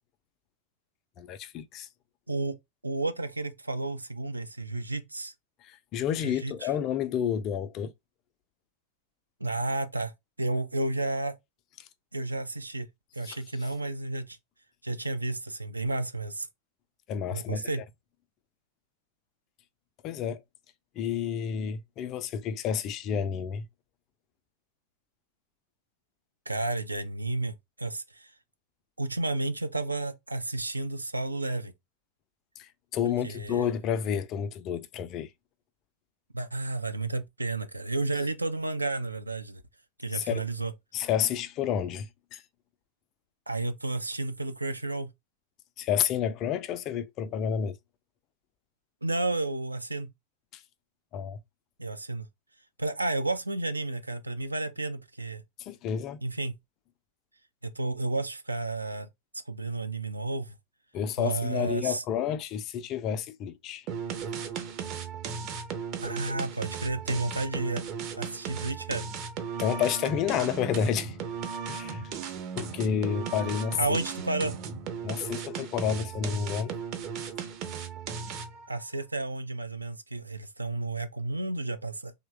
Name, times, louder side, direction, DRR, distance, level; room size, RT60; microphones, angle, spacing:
voice 1, 1.2-1.9 5.6-7.9 11.8-11.9 13.2-13.4 17.1-17.7 20.0-20.4 21.0-23.7 32.6-35.3 40.1-40.5 40.9-42.4 45.8-47.8 50.5-50.6 51.1-51.4 55.6-56.2 60.9-63.9 69.6-71.2 71.7-72.0 72.5-74.0 75.0-76.7, left 8 dB, 35° left, 0.4 m, -30 dB
voice 2, 2.8-5.3 6.2-6.7 9.4-10.1 10.4-11.3 12.1-12.9 13.1-14.4 14.8-16.5 17.3-17.8 26.5-28.3 29.0-31.7 33.2-33.7 36.3-39.6 40.0-40.7 43.5-45.1 49.0-50.1 51.8-52.3 52.8-55.4 56.2-56.5 57.6-59.1 59.5-60.5 61.2-62.0 66.0-67.8 68.2-69.1 73.8-74.6 78.7-82.1, right 2 dB, 80° right, 0.5 m, -32 dB
sound 1, 63.9-78.7, right 6 dB, 40° right, 0.6 m, -36 dB
3.0 x 2.2 x 3.2 m
figure-of-eight pair, 90°, 0 cm